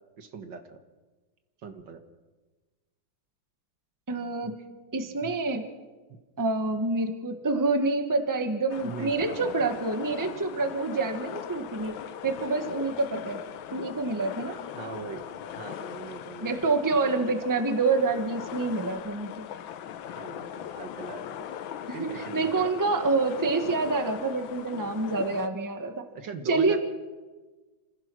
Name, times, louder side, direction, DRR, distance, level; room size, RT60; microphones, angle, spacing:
voice 1, 0.2-0.8 1.6-2.0 4.4-4.5 5.2-5.3 8.8-9.5 14.8-15.2 15.6-16.6 16.9-17.5 20.2-21.5 21.9-22.7 26.2-26.8, right 5 dB, 70° right, 7 dB, 2.1 m, -40 dB
voice 2, 4.1-4.5 4.9-5.7 6.4-11.9 12.2-13.4 13.7-14.6 16.4-19.5 21.9-26.1 26.4-26.8, right 3 dB, 10° right, 7 dB, 1.1 m, -27 dB
sound 1, 8.7-25.5, left 10 dB, 85° left, 1.6 m, -39 dB
27.0 x 15.5 x 6.2 m, 1.3 s
omnidirectional pair, 2.1 m